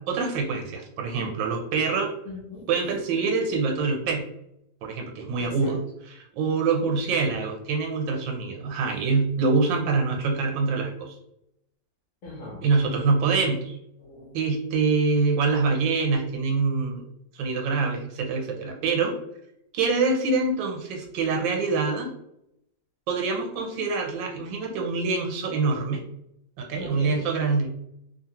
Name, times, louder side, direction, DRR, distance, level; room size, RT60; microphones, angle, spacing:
voice 1, 0.0-2.1 2.7-4.3 4.8-11.1 12.6-13.8 14.3-17.0 17.3-19.1 19.7-22.1 23.1-26.0 26.6-27.7, right 4 dB, 90° right, 2 dB, 1.3 m, -25 dB
voice 2, 2.2-2.7 5.4-5.7 12.2-12.7 14.0-14.3 26.8-27.2, left 2 dB, 55° left, -4 dB, 1.0 m, -39 dB
2.7 x 2.6 x 2.8 m, 0.81 s
omnidirectional pair, 2.0 m